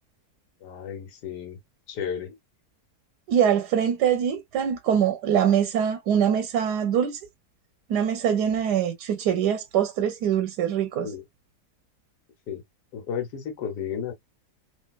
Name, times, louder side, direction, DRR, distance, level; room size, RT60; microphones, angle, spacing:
voice 1, 0.6-1.6 1.9-2.4 11.0-11.2 12.5-12.6 12.9-14.1, left 7 dB, 90° left, 1.5 m, -33 dB
voice 2, 3.3-7.2 7.9-11.1, right 8 dB, 90° right, 1.2 m, -23 dB
3.2 x 2.8 x 2.3 m
omnidirectional pair, 1.7 m